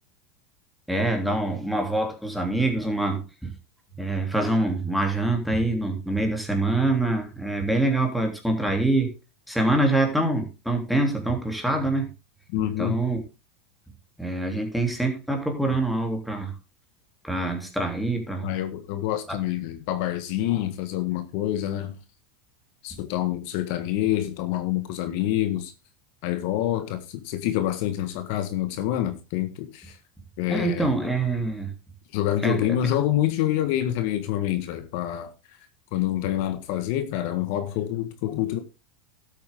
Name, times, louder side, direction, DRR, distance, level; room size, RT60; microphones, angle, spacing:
voice 1, 0.9-3.5 4.0-9.1 9.5-12.1 12.8-13.2 14.2-16.5 17.2-18.5 19.3-19.4 30.5-31.7 32.4-32.8, right 2 dB, ahead, 3.2 m, -25 dB
voice 2, 12.5-13.0 18.4-21.9 22.8-25.7 26.2-30.0 30.4-30.9 32.1-35.3 35.9-38.6, left 12 dB, 60° left, 1.6 m, -27 dB
12.5 x 8.4 x 3.8 m
supercardioid pair, 120°, 0 cm